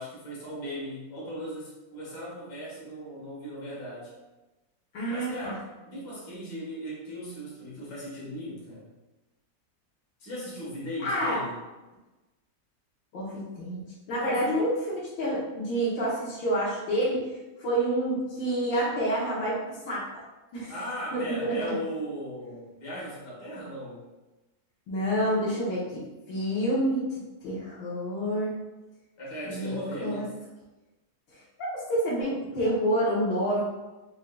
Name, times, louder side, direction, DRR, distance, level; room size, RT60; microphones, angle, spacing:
voice 1, 0.0-4.1 5.1-8.9 10.2-11.6 14.2-14.6 20.7-24.0 29.2-30.3, equal, 60° left, -6 dB, 2.0 m, -37 dB
voice 2, 4.9-5.5 11.0-11.4 13.1-13.8 14.1-17.3 17.6-19.6 19.9-20.2 20.5-20.7 21.1-21.6 24.9-27.2 27.4-28.5 29.5-30.2 31.3-33.6, right 1 dB, 85° left, -7 dB, 1.8 m, -28 dB
5.4 x 3.8 x 2.3 m, 1.1 s
omnidirectional pair, 2.0 m